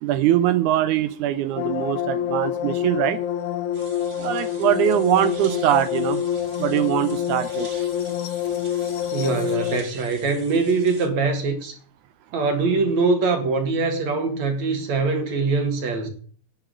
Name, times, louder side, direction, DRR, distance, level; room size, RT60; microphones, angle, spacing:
voice 1, 0.0-3.2 4.2-6.2 6.6-7.7, right 12 dB, 75° right, 2.1 m, -22 dB
sound 1, 1.6-9.8, left 10 dB, 70° left, 2.2 m, -27 dB
sound 2, 3.7-11.1, right 4 dB, 30° right, 2.2 m, -45 dB
voice 2, 9.1-11.7 12.3-16.1, right 4 dB, 60° right, 3.2 m, -23 dB
11.5 x 7.5 x 7.9 m
omnidirectional pair, 3.7 m